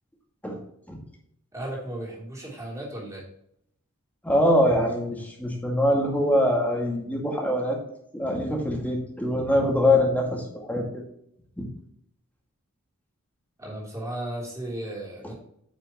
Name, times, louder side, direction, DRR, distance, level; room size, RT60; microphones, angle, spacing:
voice 1, 1.5-3.3 13.6-15.3, right 1 dB, 15° right, -4 dB, 3.4 m, -35 dB
voice 2, 4.2-7.8 8.1-11.0 11.6-11.7, left 1 dB, 10° left, -1 dB, 2.0 m, -23 dB
9.3 x 6.1 x 3.0 m, 0.71 s
head